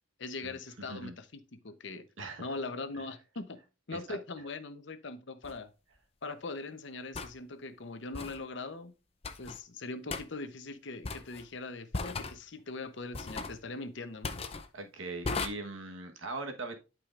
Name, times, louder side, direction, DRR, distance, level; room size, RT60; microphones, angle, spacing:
voice 1, 0.2-2.1 2.4-3.6 3.9-5.7 6.2-8.9 9.4-14.4, left 3 dB, 60° left, 0.8 m, -41 dB
sound 1, 5.4-5.6 7.1-7.3 8.1-8.4 9.2-9.6 10.1-10.2 11.0-11.4 11.9-12.4 13.1-13.6 14.2-14.7 15.2-15.5, left 3 dB, 30° left, 0.6 m, -36 dB
voice 2, 14.7-16.7, right 3 dB, 75° right, 1.3 m, -40 dB
11.5 x 5.0 x 2.5 m
head